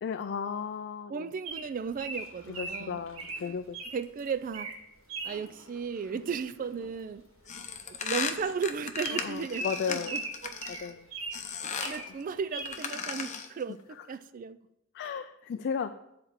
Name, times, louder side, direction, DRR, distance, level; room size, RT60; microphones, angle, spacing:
voice 1, 0.0-1.3 2.5-3.8 6.1-6.2 9.1-10.1 10.7-11.0 14.9-15.9, left 6 dB, 55° left, 0.3 m, -35 dB
voice 2, 1.1-3.0 3.9-4.7 5.2-7.2 7.9-10.6 11.8-13.8 14.1-14.6, right 6 dB, 40° right, 0.3 m, -35 dB
Bird vocalization bird call bird song, 1.5-4.0 4.4-4.8 5.1-5.4 6.9-7.1 7.4-7.5 7.7-7.9 8.4-8.5 9.0-11.4 11.7-12.1 12.5-12.8, right 3 dB, 80° right, 1.3 m, -38 dB
sound 1, 2.1-14.2, left 2 dB, 70° left, 0.9 m, -56 dB
sound 2, 7.5-10.9 11.3-12.0 12.6-13.6, left 5 dB, 35° left, 0.7 m, -36 dB
7.8 x 4.3 x 6.5 m
head